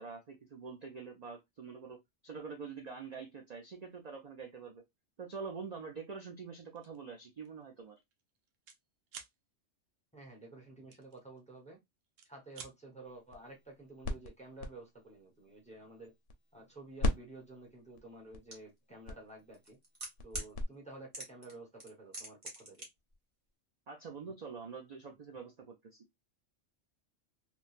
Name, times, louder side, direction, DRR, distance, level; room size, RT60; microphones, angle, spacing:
voice 1, 0.0-4.8 5.2-8.0 23.9-26.0, right 5 dB, 50° right, 0.5 m, -45 dB
sound 1, 6.8-7.0 7.4-7.6 7.9-8.8 9.1-9.3 10.9-11.7 12.0-12.7, right 6 dB, 90° right, 1.0 m, -51 dB
voice 2, 10.1-11.8 12.2-16.1 16.5-19.8 20.2-22.8, right 2 dB, 5° left, 0.8 m, -51 dB
sound 2, 13.0-16.7 17.0-20.6, left 2 dB, 65° left, 0.8 m, -40 dB
sound 3, 18.5-18.6 19.5-20.5 21.1-21.5 21.8-22.9 23.1-23.2, right 1 dB, 30° right, 1.0 m, -41 dB
3.2 x 2.1 x 2.4 m
omnidirectional pair, 1.3 m